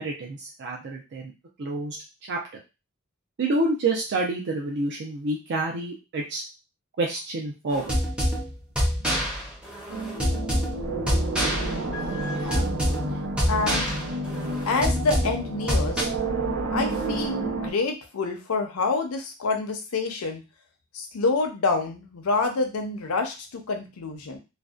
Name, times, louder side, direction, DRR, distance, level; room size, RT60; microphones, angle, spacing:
voice 1, 0.0-1.3 1.6-2.0 2.3-2.4 3.4-6.4 7.0-7.9, right 2 dB, 55° right, -1 dB, 0.4 m, -28 dB
sound 1, 7.7-16.0, equal, 5° right, 0.6 m, -27 dB
sound 2, 9.9-17.7, right 2 dB, 75° right, 0.8 m, -30 dB
voice 2, 13.5-14.0 14.7-16.1 16.7-20.4 20.9-24.4, left 3 dB, 80° left, 4 dB, 0.6 m, -27 dB
2.6 x 2.1 x 2.3 m, 0.28 s
head